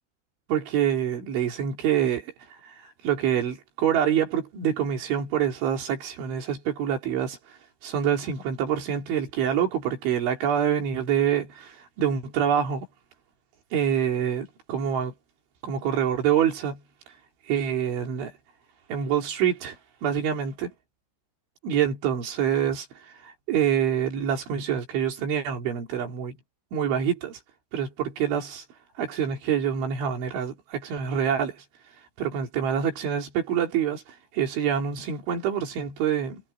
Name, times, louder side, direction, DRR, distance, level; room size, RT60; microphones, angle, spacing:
voice 1, 0.5-7.4 7.8-12.9 13.7-15.1 15.6-16.8 17.5-18.3 18.9-19.8 20.0-20.7 21.6-26.4 26.7-27.4 27.7-28.6 29.0-31.6 32.2-36.4, right 9 dB, 80° right, 5.8 m, -26 dB
omnidirectional pair, 5.3 m